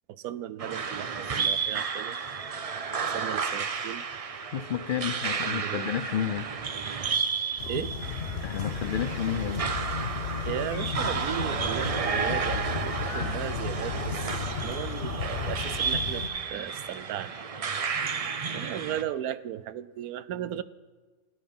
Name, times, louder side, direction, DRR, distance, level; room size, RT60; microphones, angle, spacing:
voice 1, 0.1-2.2 3.0-4.1 5.4-5.9 7.7-7.9 10.4-17.4 18.5-20.6, right 11 dB, 90° right, 15 dB, 1.1 m, -36 dB
sound 1, 0.6-19.0, right 5 dB, 55° right, 0.3 m, -32 dB
voice 2, 4.5-6.5 8.4-9.6, left 9 dB, 70° left, 11 dB, 0.5 m, -31 dB
sound 2, 7.6-16.3, left 6 dB, 50° left, 1.1 m, -34 dB
16.5 x 11.5 x 5.4 m, 1.4 s
omnidirectional pair, 1.5 m